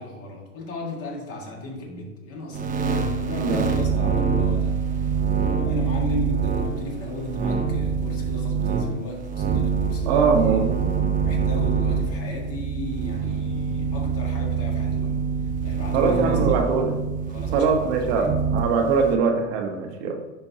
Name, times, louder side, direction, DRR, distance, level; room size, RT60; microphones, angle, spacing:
voice 1, 0.0-4.9 5.3-10.7 11.2-15.2 15.6-16.7 17.3-18.4, left 1 dB, 35° left, 0 dB, 1.8 m, -35 dB
sound 1, 2.5-19.1, right 5 dB, 20° right, 0.7 m, -25 dB
voice 2, 3.4-3.7 10.1-10.7 15.9-16.9 17.5-20.2, right 5 dB, 55° right, 3 dB, 1.1 m, -22 dB
10.5 x 4.4 x 2.8 m, 1.2 s
hypercardioid pair, 120°, 39 cm